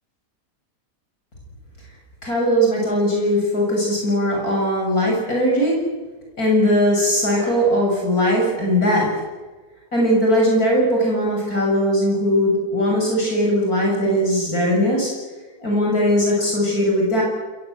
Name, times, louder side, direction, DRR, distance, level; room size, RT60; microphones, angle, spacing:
voice 1, 2.2-5.8 6.4-9.1 9.9-15.1 15.6-17.2, equal, 60° left, -2 dB, 7.7 m, -19 dB
29.0 x 21.5 x 7.9 m, 1.3 s
omnidirectional pair, 1.7 m